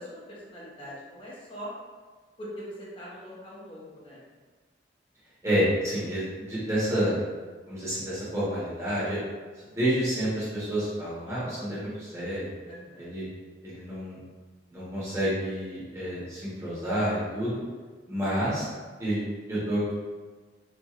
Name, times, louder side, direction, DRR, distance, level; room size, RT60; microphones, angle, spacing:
voice 1, 0.0-1.7 2.4-4.2 12.7-13.1, equal, 30° left, -7 dB, 0.8 m, -42 dB
voice 2, 5.4-7.1 7.7-9.2 9.6-12.5 13.0-13.3 13.6-14.2 14.7-17.6 18.1-18.7 19.0-19.2 19.5-19.9, equal, 15° right, -10 dB, 1.1 m, -29 dB
4.3 x 2.6 x 2.4 m, 1.4 s
head